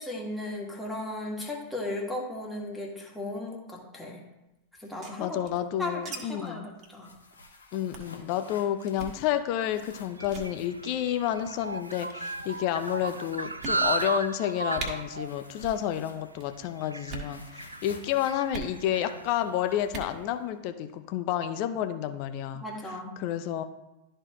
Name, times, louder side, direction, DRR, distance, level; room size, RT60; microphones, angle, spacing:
voice 1, 0.0-4.2 4.8-5.4 5.8-7.1 22.6-23.1, left 1 dB, 5° left, -2 dB, 1.8 m, -36 dB
sound 1, 4.8-6.2 6.4-6.5 6.8-7.0 7.3-7.5 7.9-8.2 8.9-9.2 9.8-10.0 10.2-10.5 11.4-11.8 12.5-12.6 13.1-13.2 13.6-14.2 14.4-14.5 14.7-14.9 15.5-15.8 16.1-16.5 17.0-17.3 18.5-18.7 19.8-20.1, right 3 dB, 35° right, 1.5 m, -39 dB
voice 2, 5.2-6.7 7.7-22.6 23.2-23.6, left 11 dB, 45° left, 9 dB, 0.6 m, -30 dB
sound 2, 6.9-9.3 9.6-10.8 11.8-14.3 15.2-16.5 16.8-19.5, left 3 dB, 75° left, 1.0 m, -52 dB
sound 3, 9.5-20.1, right 3 dB, 80° right, 0.4 m, -36 dB
12.5 x 4.3 x 3.0 m, 0.95 s
figure-of-eight pair, 90°, 0 cm